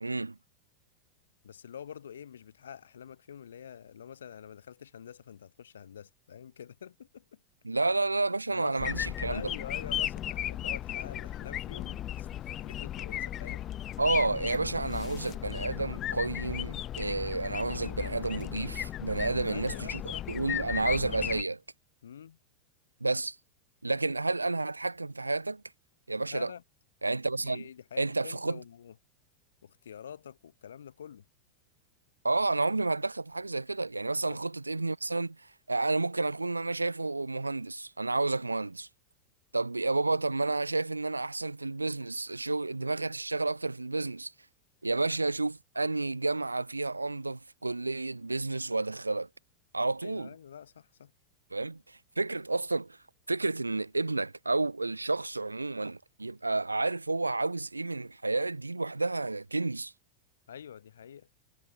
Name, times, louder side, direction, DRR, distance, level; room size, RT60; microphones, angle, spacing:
voice 1, 0.0-0.3 7.6-9.4 14.0-20.0 20.3-21.6 23.0-23.4 23.8-25.6 26.1-26.5 27.0-27.6 28.0-28.6 32.2-35.4 35.7-38.9 39.5-44.3 44.8-49.3 49.7-50.3 51.5-53.0 53.3-59.9, right 3 dB, 80° right, 0.6 m, -30 dB
voice 2, 1.4-7.4 8.5-8.9 9.3-13.7 19.5-20.3 20.6-20.7 22.0-22.4 26.3-26.6 27.4-28.9 29.6-31.2 34.1-34.4 50.0-51.1 60.5-61.3, left 8 dB, 65° left, 0.8 m, -47 dB
sound 1, 8.8-21.4, left 12 dB, 30° left, 0.5 m, -36 dB
figure-of-eight pair, 90°, 0 cm